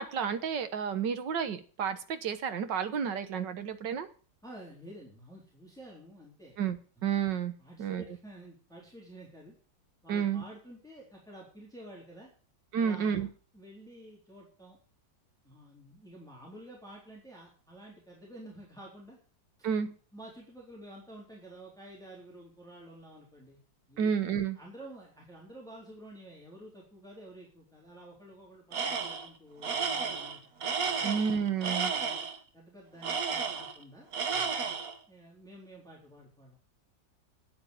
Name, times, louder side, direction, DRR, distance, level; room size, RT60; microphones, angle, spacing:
voice 1, 0.0-4.1 6.6-7.5 7.8-8.0 10.1-10.4 12.7-13.3 19.6-19.9 24.0-24.6 31.0-31.9, right 7 dB, 70° right, 11 dB, 1.8 m, -31 dB
voice 2, 4.4-6.6 7.6-9.6 10.0-12.3 12.8-13.3 13.5-14.8 15.4-19.2 20.1-23.6 23.9-24.1 24.5-30.4 31.9-32.3 32.5-34.1 35.1-36.6, right 1 dB, ahead, -3 dB, 3.8 m, -50 dB
Tools, 28.7-29.3 29.6-32.4 33.0-33.8 34.1-35.0, right 5 dB, 55° right, 1.5 m, -32 dB
9.6 x 9.1 x 8.3 m, 0.41 s
omnidirectional pair, 2.0 m